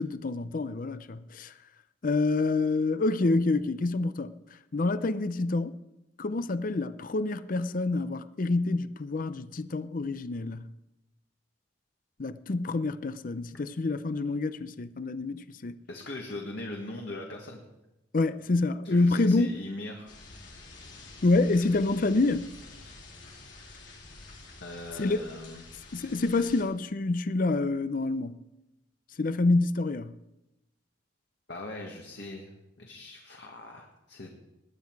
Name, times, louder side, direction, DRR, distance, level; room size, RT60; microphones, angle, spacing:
voice 1, 0.0-1.5 2.0-4.3 4.7-5.8 6.2-10.6 12.2-15.8 18.1-19.5 21.2-22.5 25.0-25.2 25.9-28.3 29.2-30.1, left 3 dB, 45° left, 0.5 m, -27 dB
voice 2, 15.9-17.6 18.8-20.1 24.6-25.6 31.5-34.4, left 2 dB, 65° left, 1.7 m, -40 dB
sound 1, 20.1-26.6, left 3 dB, 80° left, 3.5 m, -48 dB
20.0 x 9.4 x 4.7 m
head